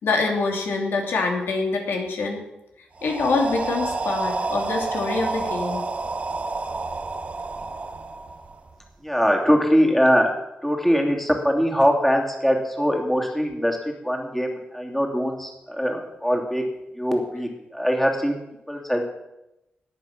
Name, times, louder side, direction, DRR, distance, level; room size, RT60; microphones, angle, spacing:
voice 1, 0.0-2.4 3.0-5.8, left 3 dB, 80° left, 2 dB, 2.8 m, -25 dB
sound 1, 3.0-8.9, right 3 dB, 35° right, 1.0 m, -29 dB
voice 2, 9.0-10.3 10.6-13.8 14.0-16.6 16.9-18.4 18.7-19.0, equal, 5° left, 0 dB, 2.8 m, -22 dB
19.0 x 8.2 x 6.0 m, 0.90 s
cardioid pair, 95°, 4 cm